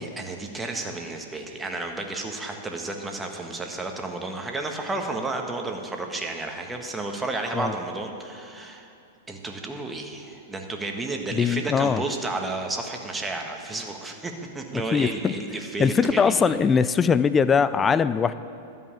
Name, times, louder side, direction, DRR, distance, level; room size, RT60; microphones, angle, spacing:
voice 1, 0.0-8.9 9.3-16.5, right 2 dB, 10° right, 3 dB, 1.3 m, -32 dB
voice 2, 11.3-12.0 14.9-15.3 15.8-18.3, left 6 dB, 20° left, 14 dB, 0.3 m, -21 dB
12.5 x 5.5 x 8.9 m, 2.7 s
hypercardioid pair, 115°, 0 cm